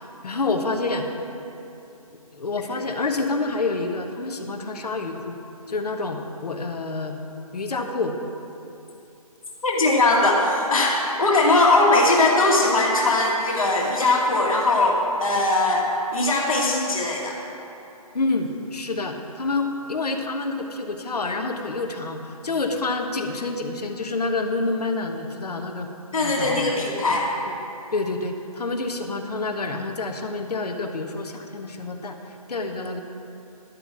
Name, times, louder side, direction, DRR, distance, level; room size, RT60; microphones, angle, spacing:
voice 1, 0.2-1.1 2.3-5.4 5.7-7.2 7.5-8.2 18.1-25.9 26.2-26.7 27.5-27.6 27.9-32.2 32.5-33.0, left 3 dB, 90° left, 5 dB, 1.2 m, -28 dB
voice 2, 9.6-17.4 26.1-27.3, left 2 dB, 60° left, -2 dB, 1.8 m, -20 dB
11.5 x 6.0 x 7.2 m, 2.8 s
hypercardioid pair, 180°, 20 cm